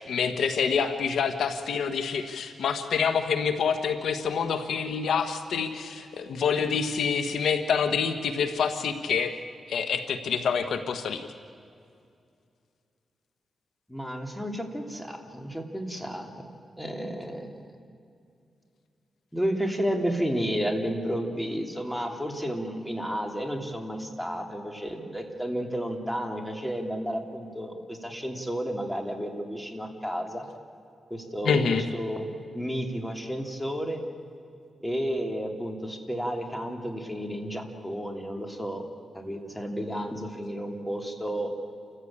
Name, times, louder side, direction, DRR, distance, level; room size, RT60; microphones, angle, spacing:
voice 1, 0.0-9.4 9.7-11.2 31.4-31.8, left 6 dB, 85° left, 8 dB, 1.3 m, -27 dB
voice 2, 13.9-16.3 16.8-17.7 19.3-30.5 31.1-34.0 34.8-38.8 39.1-41.5, equal, 5° left, 3 dB, 2.9 m, -32 dB
29.0 x 15.0 x 8.7 m, 2.4 s
cardioid pair, 90°, 0 cm